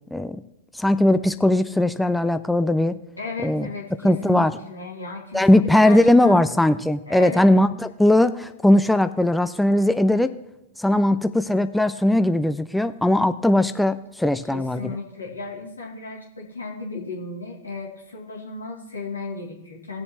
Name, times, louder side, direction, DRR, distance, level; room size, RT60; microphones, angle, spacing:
voice 1, 0.1-0.4 0.7-3.0 3.4-3.7 4.0-4.5 5.3-10.3 10.8-15.0, left 1 dB, 5° left, 11 dB, 0.4 m, -19 dB
voice 2, 3.2-6.4 7.0-7.4 14.5-20.0, left 3 dB, 90° left, -2 dB, 2.6 m, -34 dB
19.0 x 7.0 x 3.1 m, 0.89 s
figure-of-eight pair, 105°, 0 cm